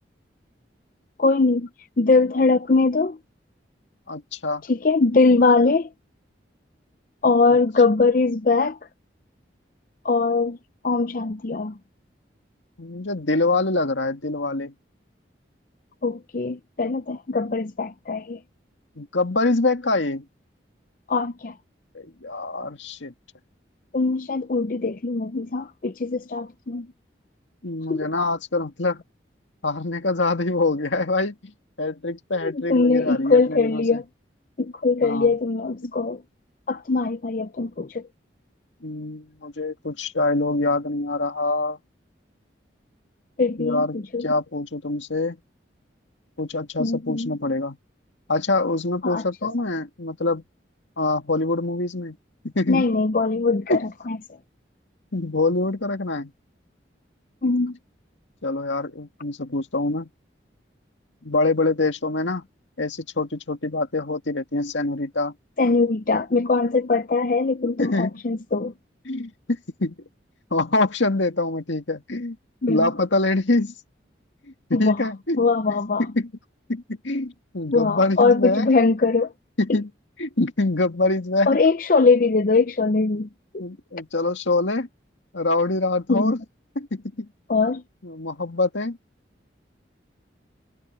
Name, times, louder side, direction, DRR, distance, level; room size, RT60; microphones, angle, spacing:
voice 1, 1.2-1.7 2.0-3.2 4.7-5.9 7.2-8.8 10.0-10.6 10.8-11.8 16.0-18.4 21.1-21.5 23.9-26.9 27.9-28.1 32.4-34.0 34.6-36.2 36.7-38.0 43.4-43.8 44.1-44.3 46.8-47.4 49.0-49.2 52.7-54.2 57.4-57.8 65.6-68.7 72.6-72.9 74.7-75.0 75.4-76.0 77.7-79.3 81.5-83.3 83.5-83.6 86.1-86.4 87.5-87.8, left 3 dB, 45° left, 0.5 m, -21 dB
voice 2, 4.1-4.6 11.5-11.6 12.8-14.7 19.0-20.2 21.9-23.1 27.6-29.0 29.6-31.5 31.8-34.0 35.0-35.4 35.8-35.9 38.8-41.8 43.6-45.4 46.4-47.8 48.3-50.4 51.0-52.2 52.4-52.9 53.7-53.8 55.1-56.3 58.4-60.1 61.2-62.4 62.8-65.3 67.8-68.2 69.1-70.0 70.5-72.4 72.7-73.7 74.7-76.3 76.7-78.7 79.6-79.9 80.2-81.6 83.1-83.2 83.6-84.9 85.3-86.4 86.8-87.3 87.7-87.8 88.0-89.0, left 2 dB, 80° left, 2.0 m, -25 dB
head